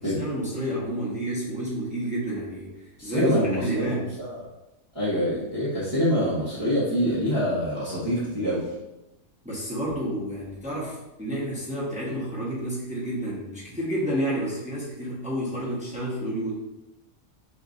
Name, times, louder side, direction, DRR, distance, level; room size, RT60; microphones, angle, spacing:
voice 1, 0.0-2.7 3.0-4.1 9.4-16.6, equal, 5° right, -6 dB, 1.0 m, -30 dB
voice 2, 3.0-3.9 4.2-4.4 4.9-8.6, equal, 20° left, -12 dB, 1.1 m, -25 dB
6.4 x 2.8 x 2.6 m, 0.96 s
omnidirectional pair, 1.5 m